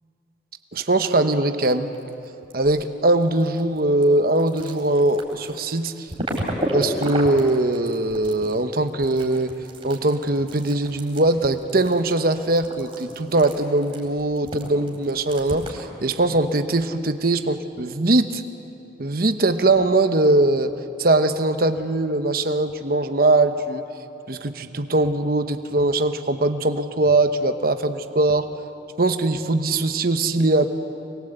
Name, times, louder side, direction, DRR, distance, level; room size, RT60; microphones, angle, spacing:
voice 1, 0.7-1.9 2.5-6.1 6.7-9.6 9.8-18.4 19.0-20.7 21.0-23.8 24.3-28.5 29.0-30.7, right 2 dB, 50° right, 8 dB, 1.0 m, -21 dB
sound 1, 1.8-2.9 3.1-15.9, right 1 dB, 30° right, 3.9 m, -33 dB
25.0 x 21.5 x 8.0 m, 2.8 s
head